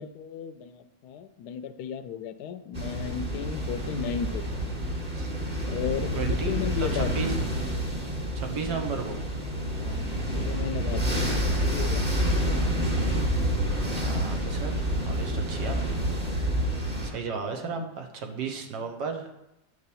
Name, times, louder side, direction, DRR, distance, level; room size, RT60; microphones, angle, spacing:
voice 1, 0.0-4.4 5.7-7.1 8.6-8.7 9.8-12.1 17.6-17.9, left 8 dB, 75° left, 10 dB, 1.1 m, -35 dB
sound 1, 2.7-17.1, equal, 25° right, 1.2 m, -28 dB
voice 2, 6.2-6.5 6.9-7.3 8.3-9.2 14.0-16.0 17.0-19.3, right 5 dB, 85° right, 4 dB, 1.6 m, -34 dB
9.6 x 3.3 x 6.8 m, 0.91 s
omnidirectional pair, 1.8 m